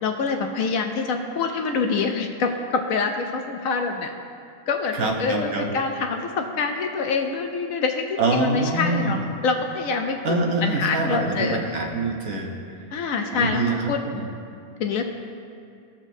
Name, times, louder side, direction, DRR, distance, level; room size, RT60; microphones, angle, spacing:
voice 1, 0.0-4.1 4.7-10.4 10.6-11.6 12.9-13.6 13.9-14.0 14.8-15.0, left 4 dB, 70° left, 4 dB, 0.9 m, -25 dB
voice 2, 4.9-5.7 8.2-9.1 10.2-12.8 13.3-14.3, right 2 dB, 60° right, 1 dB, 1.3 m, -25 dB
15.0 x 7.2 x 2.7 m, 2.4 s
omnidirectional pair, 1.6 m